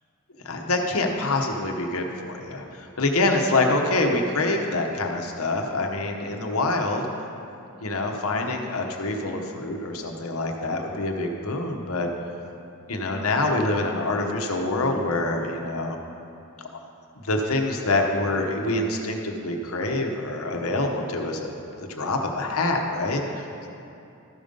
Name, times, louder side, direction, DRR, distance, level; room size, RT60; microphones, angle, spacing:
voice 1, 0.4-7.0 7.8-12.1 12.9-16.0 16.7-16.8 17.2-21.5 21.8-23.5, left 2 dB, 75° left, 2 dB, 1.0 m, -26 dB
13.5 x 5.2 x 5.3 m, 2.7 s
head